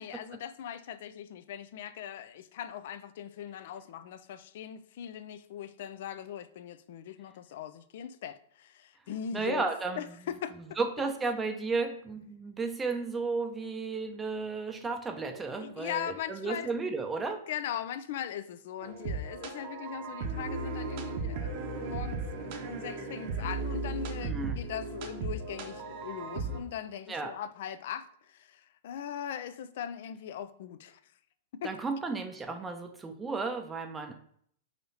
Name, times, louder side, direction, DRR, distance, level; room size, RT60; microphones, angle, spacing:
voice 1, 0.0-9.6 10.0-10.5 15.6-16.7 17.3-31.0 31.6-31.7, left 9 dB, 60° left, 0.3 m, -40 dB
voice 2, 9.3-10.0 10.8-17.4 24.2-24.6 27.1-27.3 31.6-34.1, right 4 dB, 15° right, 0.5 m, -33 dB
sound 1, 18.8-26.6, right 3 dB, 50° right, 0.8 m, -36 dB
4.1 x 2.9 x 4.0 m
figure-of-eight pair, 105°, 0 cm